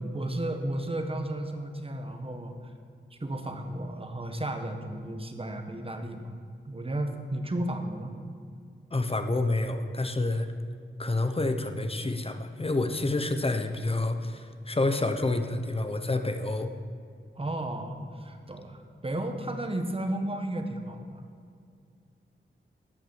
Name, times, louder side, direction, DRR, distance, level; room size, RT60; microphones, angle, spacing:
voice 1, 0.1-2.6 3.2-6.3 6.7-8.2 17.4-21.2, right 1 dB, 25° right, 5 dB, 1.4 m, -33 dB
voice 2, 8.9-10.5 11.0-16.7, left 2 dB, 30° left, 8 dB, 0.9 m, -28 dB
13.5 x 6.0 x 7.2 m, 2.3 s
cardioid pair, 60°, 21 cm